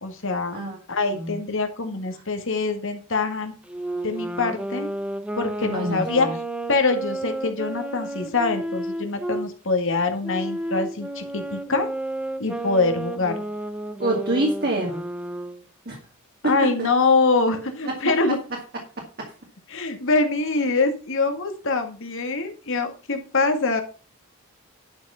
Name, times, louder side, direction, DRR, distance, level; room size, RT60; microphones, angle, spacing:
voice 1, 0.0-0.6 0.9-3.5 4.0-4.9 5.4-6.3 6.7-11.9 12.4-13.4 16.4-18.4 19.7-23.8, left 3 dB, 60° left, 6 dB, 2.0 m, -24 dB
Wind instrument woodwind instrument, 3.7-9.5 10.2-15.6, right 1 dB, 5° right, 0.7 m, -31 dB
voice 2, 5.6-6.3 14.0-15.0 15.9-16.0 16.4-16.9 17.8-18.2 19.0-19.3, right 1 dB, 45° right, 0 dB, 2.3 m, -26 dB
11.0 x 6.1 x 5.7 m, 0.35 s
head